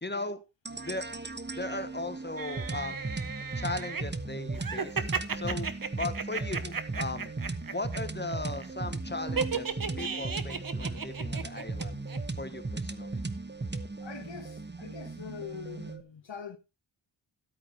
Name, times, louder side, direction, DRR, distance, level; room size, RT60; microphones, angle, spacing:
voice 1, 0.0-0.4 0.8-1.1 1.5-3.0 3.5-5.1 5.3-7.3 7.7-12.1 12.4-13.2, left 2 dB, 20° left, 1.3 m, -37 dB
sound 1, 0.7-16.0, right 3 dB, 20° right, 1.1 m, -37 dB
sound 2, 2.4-4.0 4.5-8.0 8.2-8.7 9.4-11.8 12.1-12.2, right 5 dB, 45° right, 1.1 m, -34 dB
voice 2, 14.0-16.6, left 7 dB, 65° left, 1.6 m, -43 dB
13.5 x 8.4 x 3.2 m
cardioid pair, 55°, 47 cm